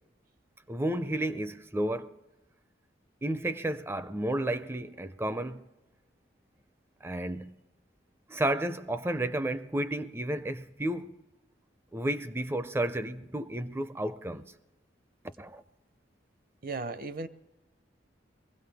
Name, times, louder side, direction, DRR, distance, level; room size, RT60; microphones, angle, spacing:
voice 1, 0.7-2.1 3.2-5.6 7.0-7.6 8.3-11.2 11.9-14.5 15.4-15.6, right 1 dB, 15° right, 0.4 m, -32 dB
voice 2, 16.6-17.3, right 3 dB, 50° right, 0.7 m, -35 dB
22.5 x 16.5 x 3.5 m
head